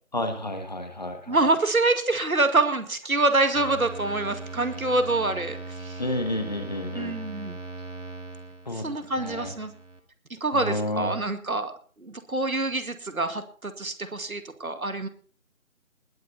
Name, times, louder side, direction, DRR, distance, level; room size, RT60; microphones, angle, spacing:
voice 1, 0.1-1.4 6.0-7.1 8.6-9.5 10.5-11.1, left 1 dB, 30° left, 8 dB, 1.6 m, -31 dB
voice 2, 1.3-6.0 6.9-7.6 8.7-9.7 10.3-15.1, right 2 dB, 80° right, 9 dB, 2.2 m, -26 dB
sound 1, 3.5-10.0, right 3 dB, 60° right, 2.6 m, -39 dB
20.0 x 9.0 x 4.2 m, 0.42 s
figure-of-eight pair, 170°, 42 cm